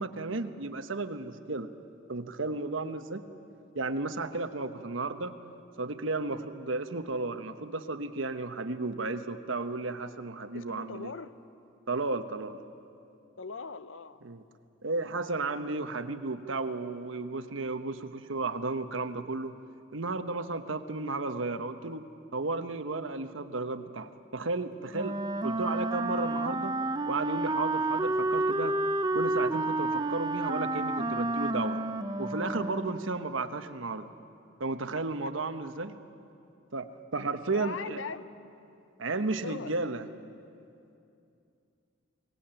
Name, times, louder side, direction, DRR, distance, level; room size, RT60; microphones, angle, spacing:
voice 1, 0.0-1.7 2.1-3.2 3.7-5.3 5.8-11.1 11.9-12.6 14.2-14.4 14.8-19.5 19.9-22.1 22.3-26.7 27.1-28.8 29.1-31.8 32.2-34.1 34.6-36.0 36.7-38.0 39.0-40.1, right 3 dB, 85° right, 9 dB, 1.1 m, -33 dB
voice 2, 10.5-11.4 13.4-14.2 37.5-38.3 39.4-39.7, left 4 dB, 85° left, 13 dB, 0.8 m, -40 dB
Wind instrument woodwind instrument, 24.9-33.2, right 2 dB, 20° right, 0.6 m, -30 dB
22.5 x 19.0 x 9.0 m, 2.6 s
head